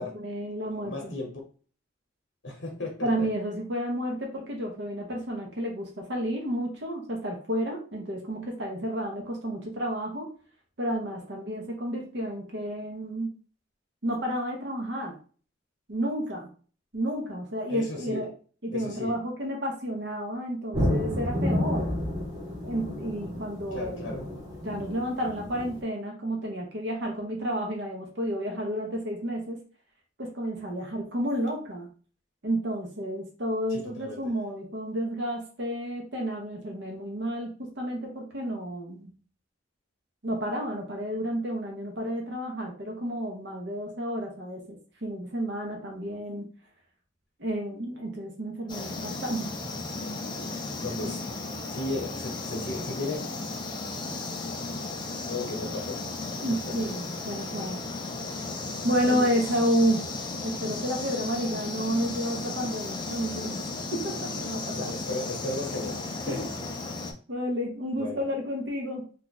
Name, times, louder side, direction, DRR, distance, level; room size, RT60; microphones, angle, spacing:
voice 1, 0.0-1.2 3.0-10.3 10.8-13.3 14.0-15.1 15.9-16.5 16.9-18.3 18.6-21.9 22.6-24.2 24.6-29.6 30.2-31.9 32.4-39.1 40.2-46.5 47.4-49.5 56.4-57.8 58.8-60.0 60.4-63.6 63.9-64.9 66.3-66.5 67.3-69.0, equal, 60° right, 0.8 m, -31 dB
voice 2, 0.6-1.4 2.4-3.3 17.7-18.3 18.7-19.2 23.7-24.3 33.7-34.3 50.8-51.2 51.7-53.2 55.3-56.1 56.5-56.8 59.0-59.3 64.7-66.6 67.9-68.3, left 2 dB, 70° left, 0.8 m, -35 dB
sound 1, 20.7-25.8, left 1 dB, 20° right, 0.9 m, -30 dB
sound 2, 48.7-67.1, left 3 dB, 25° left, 0.4 m, -35 dB
2.8 x 2.4 x 3.9 m
head